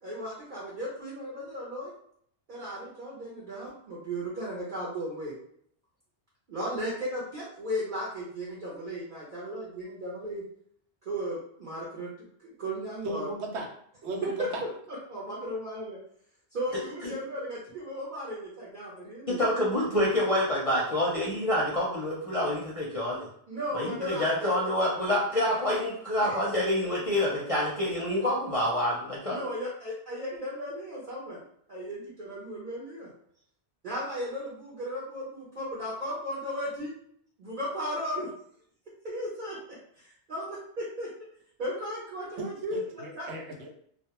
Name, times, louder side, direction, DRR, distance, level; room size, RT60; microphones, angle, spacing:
voice 1, 0.0-1.9 2.5-5.3 6.5-10.4 11.1-13.3 14.4-14.5 15.1-16.0 16.5-19.5 23.5-24.3 26.3-26.4 29.3-31.4 31.7-33.1 33.8-36.9 37.4-38.3 39.0-39.6 40.3-40.6 41.0-41.1 41.6-43.3, equal, 50° right, -7 dB, 0.8 m, -35 dB
voice 2, 13.0-13.7 14.0-14.6 42.4-42.5 43.0-43.7, right 2 dB, 85° right, 1 dB, 0.9 m, -35 dB
voice 3, 19.3-23.3 23.7-29.5, left 1 dB, 40° left, -6 dB, 0.5 m, -27 dB
2.3 x 2.1 x 2.9 m, 0.65 s
omnidirectional pair, 1.1 m